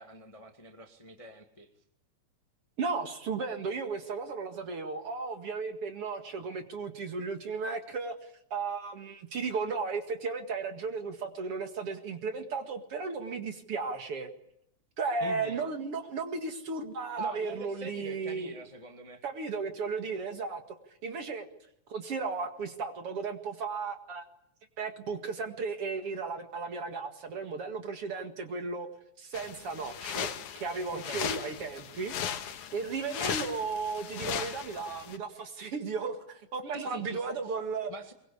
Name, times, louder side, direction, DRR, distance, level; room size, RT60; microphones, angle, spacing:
voice 1, 0.0-1.7 15.2-15.6 17.2-19.2 30.9-31.4 36.7-37.4 37.9-38.1, equal, 15° left, 5 dB, 1.4 m, -44 dB
voice 2, 2.8-8.1 8.5-14.3 15.0-18.5 19.2-20.6 21.0-21.5 21.9-24.2 24.8-28.9 29.2-30.3 30.6-37.9, right 4 dB, 50° right, 6 dB, 2.7 m, -35 dB
sound 1, 29.3-35.2, left 9 dB, 75° left, 2.8 m, -37 dB
23.5 x 22.5 x 8.5 m, 0.74 s
omnidirectional pair, 3.5 m